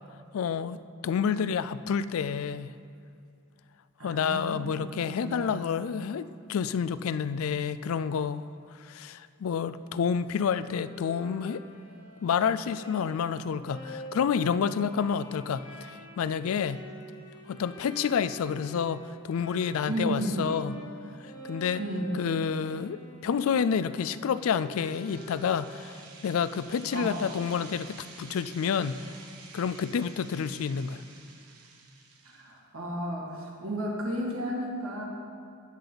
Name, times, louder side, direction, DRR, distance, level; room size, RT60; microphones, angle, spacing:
voice 1, 0.3-0.8 1.0-2.7 4.0-11.6 12.2-16.8 17.5-20.8 21.2-21.8 22.1-29.0 29.5-31.0, left 7 dB, 65° left, 15 dB, 0.3 m, -29 dB
voice 2, 4.0-5.5 19.9-20.5 21.8-22.2 26.9-27.2 32.3-35.0, right 1 dB, 65° right, -2 dB, 2.1 m, -33 dB
Bowed string instrument, 10.6-20.0 20.3-26.1, equal, 90° left, 3.1 m, -47 dB
sound 1, 24.6-32.5, right 4 dB, 85° right, 1.4 m, -50 dB
18.5 x 6.8 x 4.0 m, 2.3 s
head